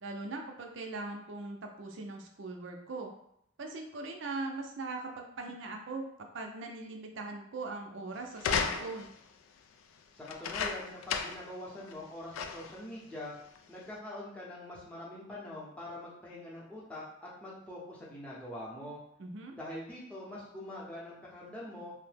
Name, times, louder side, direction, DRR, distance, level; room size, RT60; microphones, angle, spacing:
voice 1, 0.0-3.1 3.6-6.1 6.3-9.1 19.2-19.6, right 3 dB, 65° right, 2 dB, 0.5 m, -40 dB
sound 1, 8.4-9.2 10.3-11.5 11.9-12.0 12.3-12.8 13.6-13.7, left 6 dB, 85° left, 0.3 m, -34 dB
voice 2, 10.1-13.3 13.7-19.0 19.6-21.9, left 1 dB, 5° left, -7 dB, 0.7 m, -44 dB
2.7 x 2.1 x 3.3 m, 0.75 s
head